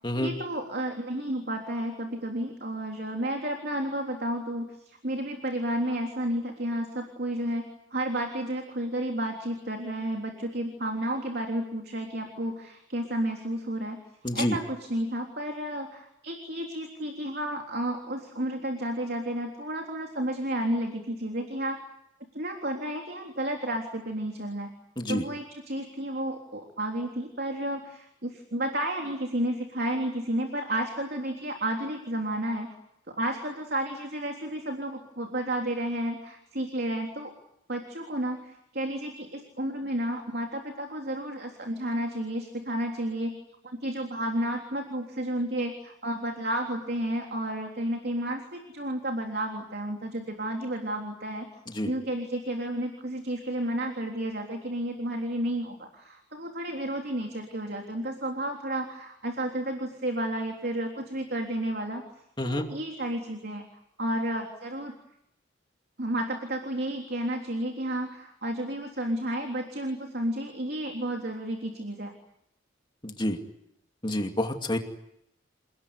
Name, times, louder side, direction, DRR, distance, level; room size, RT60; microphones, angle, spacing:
voice 1, 0.2-14.0 14.3-21.8 22.3-24.7 25.1-32.8 33.1-37.3 37.7-43.4 43.6-51.5 51.9-62.0 62.4-63.6 64.0-64.9 66.0-72.1, right 1 dB, 50° right, 3 dB, 3.6 m, -32 dB
voice 2, 14.2-14.6 25.0-25.2 51.8-51.9 62.4-62.6 73.0-73.4 74.0-74.8, left 1 dB, 25° left, 3 dB, 2.5 m, -28 dB
29.5 x 19.5 x 9.7 m, 0.79 s
head